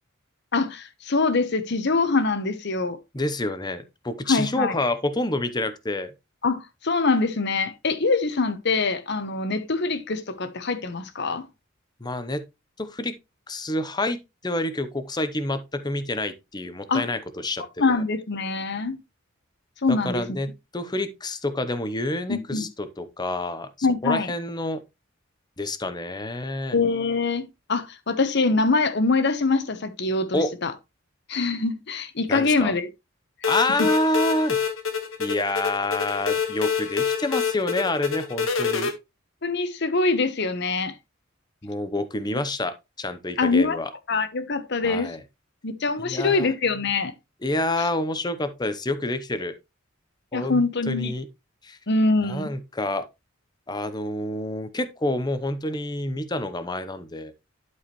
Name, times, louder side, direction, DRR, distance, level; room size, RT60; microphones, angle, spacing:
voice 1, 0.5-3.0 4.3-4.8 6.4-11.5 16.9-17.0 17.8-19.0 19.8-20.4 22.3-22.7 23.8-24.3 26.7-30.7 31.3-32.9 39.4-40.9 43.4-43.8 44.1-45.1 45.6-47.1 50.3-51.1 51.9-52.5, left 3 dB, 55° left, 1.0 m, -24 dB
voice 2, 3.1-6.1 12.0-12.4 12.8-13.1 13.5-18.0 19.9-24.8 25.6-26.8 30.3-30.5 32.3-32.7 33.5-34.6 35.2-38.9 41.6-43.9 44.8-45.2 46.0-46.5 47.4-49.5 50.3-50.6 50.9-51.2 51.6-51.8 52.3-53.0 53.7-57.3, left 1 dB, 20° left, 0.8 m, -28 dB
sound 1, 33.4-38.9, left 6 dB, 90° left, 1.5 m, -26 dB
11.5 x 4.8 x 3.1 m
head